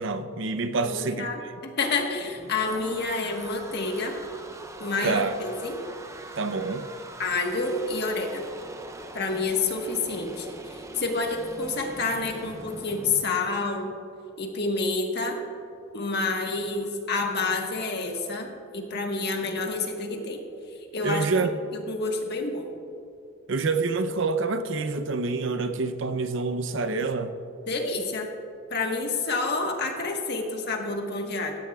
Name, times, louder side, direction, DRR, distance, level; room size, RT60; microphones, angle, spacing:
voice 1, 0.0-1.3 5.0-5.4 6.4-6.9 21.0-21.5 23.5-27.3, right 4 dB, 65° right, 9 dB, 0.7 m, -27 dB
voice 2, 0.8-4.2 4.8-5.8 7.2-8.5 9.1-13.9 14.4-15.4 15.9-20.4 20.7-21.3 21.7-22.7 27.7-28.3 28.7-31.6, left 3 dB, 55° left, 2 dB, 1.4 m, -29 dB
sound 1, 2.0-13.2, right 2 dB, 15° right, 0.6 m, -43 dB
16.5 x 14.0 x 2.4 m, 2.6 s
head